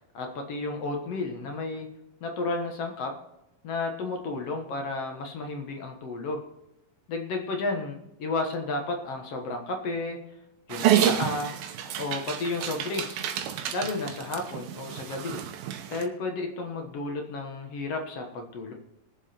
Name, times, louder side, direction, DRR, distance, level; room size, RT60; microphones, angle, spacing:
voice 1, 0.1-1.9 2.2-3.1 3.6-6.4 7.1-10.2 10.7-11.5 12.0-13.2 13.7-15.4 15.9-18.7, left 3 dB, 55° left, 3 dB, 2.1 m, -32 dB
Dog, 10.7-16.1, right 10 dB, 90° right, 2.8 m, -29 dB
21.0 x 7.4 x 4.4 m, 0.87 s
omnidirectional pair, 4.0 m